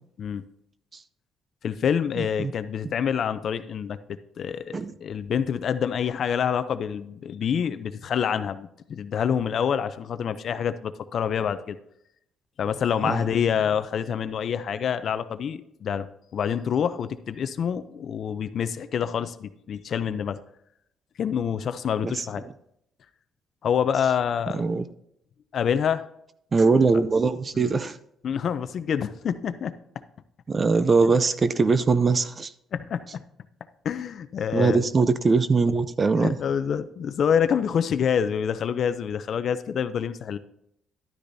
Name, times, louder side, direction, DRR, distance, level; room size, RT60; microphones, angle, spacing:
voice 1, 1.6-4.0 4.4-11.8 12.6-16.1 16.3-20.4 21.2-22.4 23.6-24.7 25.5-26.1 27.6-27.7 28.2-29.7 32.7-33.2 33.8-34.8 36.1-40.4, left 8 dB, 55° left, 12 dB, 0.5 m, -27 dB
voice 2, 2.2-2.5 4.7-4.9 13.0-13.2 22.0-22.2 24.5-24.8 26.5-28.0 30.5-32.5 34.5-36.4, right 4 dB, 30° right, 14 dB, 0.4 m, -21 dB
11.5 x 9.9 x 2.7 m, 0.75 s
cardioid pair, 125°, 0 cm